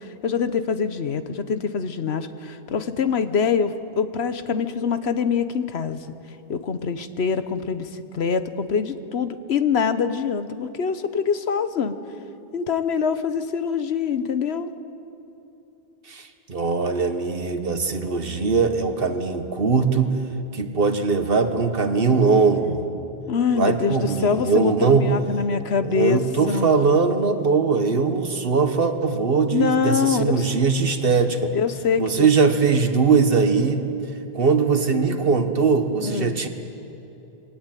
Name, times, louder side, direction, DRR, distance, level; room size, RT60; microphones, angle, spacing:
voice 1, 0.2-6.0 6.5-11.9 12.5-14.7 23.3-26.2 26.5-26.7 29.5-30.5 31.5-32.3 36.0-36.4, left 6 dB, 85° left, 10 dB, 1.2 m, -24 dB
voice 2, 16.1-20.1 20.5-22.8 23.5-25.0 25.8-31.5 32.0-33.8 34.3-36.5, right 5 dB, 65° right, 7 dB, 1.5 m, -21 dB
22.0 x 17.5 x 9.1 m, 3.0 s
omnidirectional pair, 1.1 m